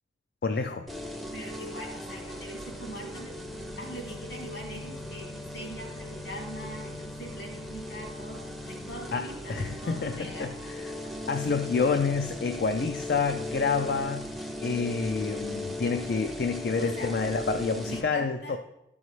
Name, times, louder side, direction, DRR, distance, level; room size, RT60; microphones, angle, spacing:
voice 1, 0.4-0.9 9.1-10.5 11.0-14.3 14.6-18.6, left 4 dB, 55° left, 7 dB, 0.4 m, -28 dB
sound 1, 0.9-18.0, left 1 dB, ahead, 0.5 m, -38 dB
voice 2, 1.0-3.4 3.8-10.8 16.8-17.1 17.8-18.6, equal, 75° left, 0 dB, 2.5 m, -43 dB
12.5 x 5.5 x 3.2 m, 0.88 s
head